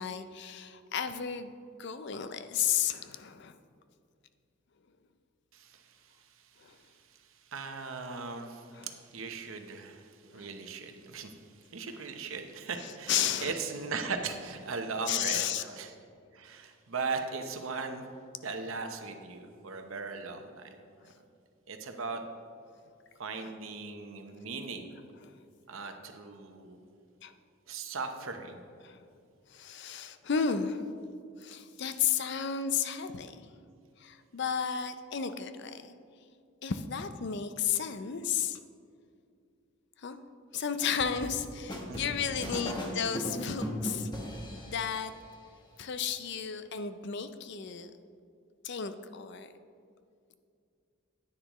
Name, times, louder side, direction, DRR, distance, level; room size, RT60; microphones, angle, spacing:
voice 1, 0.0-1.5 1.8-3.6 6.6-6.8 8.7-8.9 10.3-10.5 11.9-12.0 12.8-13.5 15.1-15.7 21.0-21.1 23.4-23.5 25.3-25.4 27.2-27.3 28.8-29.0 29.5-31.0 31.4-33.5 34.0-35.9 36.6-38.6 40.0-40.2 40.5-44.1 44.7-45.1 45.8-47.9 48.6-49.5, left 7 dB, 55° left, 10 dB, 0.5 m, -33 dB
voice 2, 5.5-15.9 16.3-18.0 18.4-20.7 21.0-21.1 21.7-22.2 23.2-24.9 25.7-26.8 27.7-28.6 41.8-42.8, right 4 dB, 80° right, 6 dB, 0.9 m, -39 dB
sound 1, 40.8-45.1, equal, 20° left, 1.1 m, -37 dB
10.0 x 9.6 x 3.0 m, 2.4 s
head